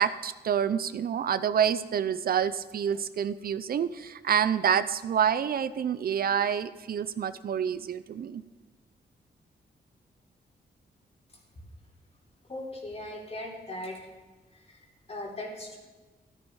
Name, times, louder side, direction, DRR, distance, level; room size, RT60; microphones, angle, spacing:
voice 1, 0.0-8.4, right 8 dB, 60° right, 14 dB, 0.5 m, -27 dB
voice 2, 12.5-14.0 14.5-14.8 15.1-15.8, left 1 dB, 35° left, -1 dB, 3.5 m, -38 dB
14.0 x 13.0 x 4.8 m, 1.2 s
wide cardioid pair, 135°, 18 cm